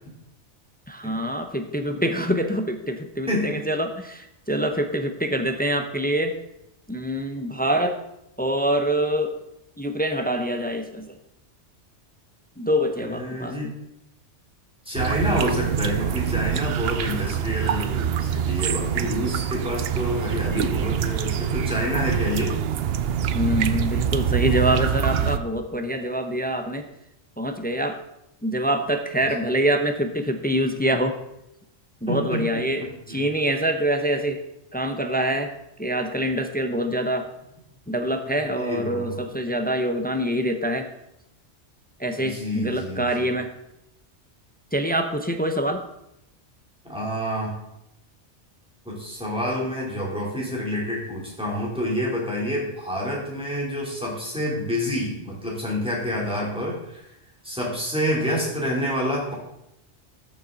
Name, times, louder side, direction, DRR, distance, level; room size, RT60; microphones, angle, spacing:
voice 1, 0.9-6.4 6.9-8.0 8.4-9.4 9.8-11.2 12.6-13.7 19.0-19.1 23.3-26.9 27.4-28.0 28.4-31.2 32.0-34.4 34.7-35.5 35.8-37.3 37.9-40.9 42.0-43.5 44.7-45.8, right 1 dB, 10° left, 6 dB, 0.5 m, -25 dB
voice 2, 3.3-3.6 13.0-13.7 14.8-22.6 32.1-32.6 33.1-33.2 38.2-39.2 42.2-43.3 46.9-47.6 48.8-57.1 57.4-59.3, equal, 5° right, -5 dB, 3.4 m, -28 dB
Tea Garden Ambience, 14.9-25.4, right 8 dB, 65° right, 0.8 m, -25 dB
13.0 x 7.0 x 4.0 m, 0.84 s
omnidirectional pair, 1.2 m